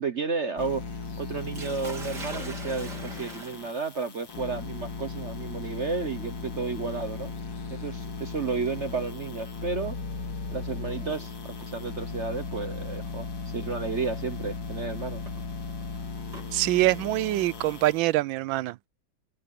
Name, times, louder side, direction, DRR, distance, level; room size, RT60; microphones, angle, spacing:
voice 1, 0.0-7.3 7.7-10.0 10.5-15.2, right 4 dB, 45° right, 1.2 m, -32 dB
sound 1, 0.6-18.1, left 4 dB, 75° left, 3.3 m, -37 dB
Sink (filling or washing), 1.5-11.5 12.6-12.9 13.4-13.5 15.0-16.5, right 2 dB, 60° right, 4.8 m, -46 dB
voice 2, 16.5-18.9, right 16 dB, 90° right, 1.3 m, -25 dB
omnidirectional pair, 2.1 m